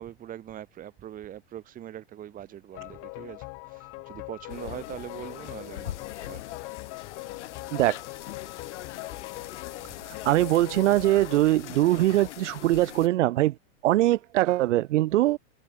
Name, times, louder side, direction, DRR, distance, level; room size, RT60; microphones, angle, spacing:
voice 1, 0.0-6.4, right 11 dB, 25° right, 3.6 m, -42 dB
sound 1, 2.7-11.4, left 30 dB, 40° left, 3.0 m, -41 dB
sound 2, 4.5-13.1, left 13 dB, 75° left, 6.9 m, -42 dB
voice 2, 10.2-13.5 13.8-15.4, right 15 dB, 90° right, 0.7 m, -22 dB
supercardioid pair, 155°, 35 cm